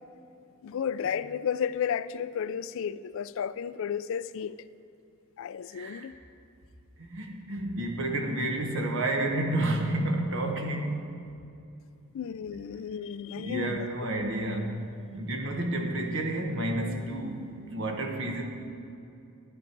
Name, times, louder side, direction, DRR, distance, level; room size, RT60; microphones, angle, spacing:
voice 1, 0.6-4.6 5.4-6.1 12.1-13.9, left 8 dB, 65° left, 0.3 m, -33 dB
voice 2, 5.7-6.1 7.0-11.1 13.3-18.4, right 1 dB, 65° right, 1.4 m, -30 dB
13.0 x 10.0 x 4.6 m
head